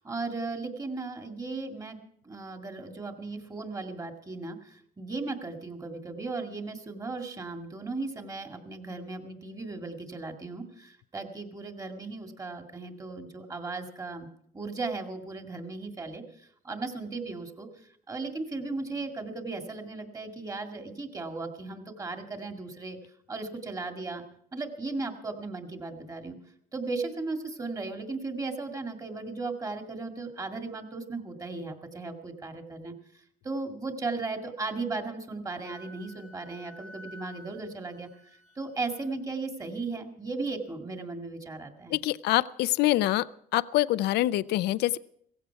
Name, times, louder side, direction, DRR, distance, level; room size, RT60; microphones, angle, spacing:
voice 1, 0.0-2.0 2.2-14.3 14.5-17.7 18.1-23.0 23.3-24.2 24.5-26.4 26.7-32.9 33.4-38.1 38.6-42.0, right 3 dB, 20° right, 4 dB, 2.1 m, -36 dB
Wind instrument woodwind instrument, 35.6-39.1, equal, 75° right, 3.5 m, -51 dB
voice 2, 41.9-43.3 43.5-45.0, left 16 dB, 80° left, 16 dB, 0.5 m, -25 dB
17.0 x 15.5 x 4.6 m, 0.68 s
cardioid pair, 110°, 17 cm